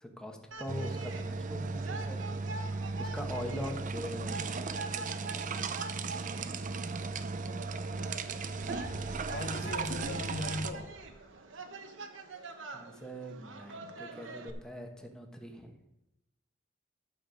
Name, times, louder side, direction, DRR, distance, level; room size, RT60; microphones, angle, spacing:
voice 1, 0.0-5.5 12.7-15.8, equal, 5° left, 3 dB, 1.2 m, -43 dB
sound 1, 0.5-14.5, right 3 dB, 90° right, 1.1 m, -45 dB
sound 2, 0.7-10.7, right 4 dB, 45° right, 0.6 m, -36 dB
sound 3, 8.5-11.5, equal, 35° left, 1.3 m, -49 dB
voice 2, 9.3-11.0 13.8-13.9, left 2 dB, 65° left, 7 dB, 0.9 m, -38 dB
12.0 x 6.7 x 5.2 m, 0.87 s
head